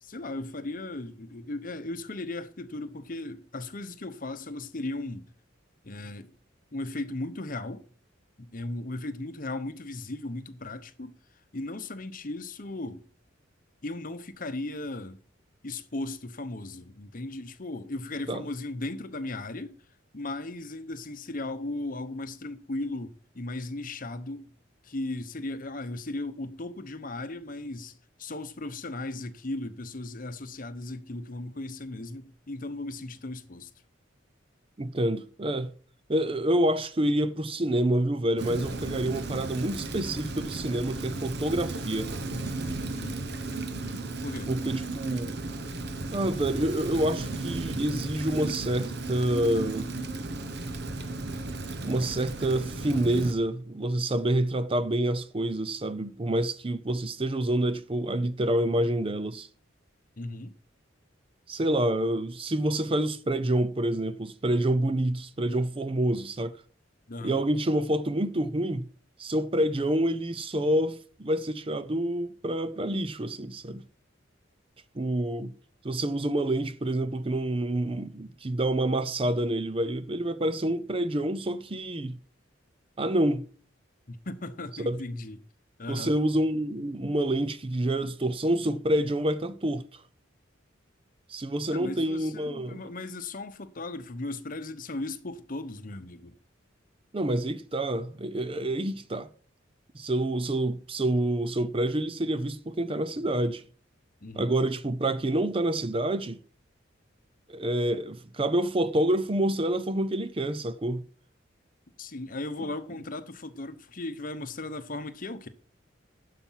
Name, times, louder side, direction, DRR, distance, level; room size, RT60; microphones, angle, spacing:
voice 1, 0.0-5.3 5.8-6.3 6.7-7.9 8.4-11.2 11.5-13.1 13.8-15.2 15.6-19.8 20.1-24.5 24.8-33.7 42.9-43.3 44.2-44.5 60.2-60.5 67.1-67.4 84.1-85.4 85.8-86.1 91.7-96.3 104.2-104.5 112.0-115.5, left 2 dB, 45° left, 0.9 m, -36 dB
voice 2, 34.8-35.7 36.1-42.1 44.5-45.4 46.1-49.9 51.8-59.5 61.5-66.6 67.2-68.9 69.2-73.8 74.9-75.5 75.8-82.2 83.0-83.5 84.9-85.0 85.9-90.0 91.3-92.8 97.1-99.3 99.9-103.6 104.4-106.4 107.5-111.0 112.6-112.7, right 1 dB, 30° right, 0.5 m, -27 dB
Rain, 38.4-53.3, right 2 dB, 55° right, 1.1 m, -35 dB
11.5 x 5.8 x 5.7 m
head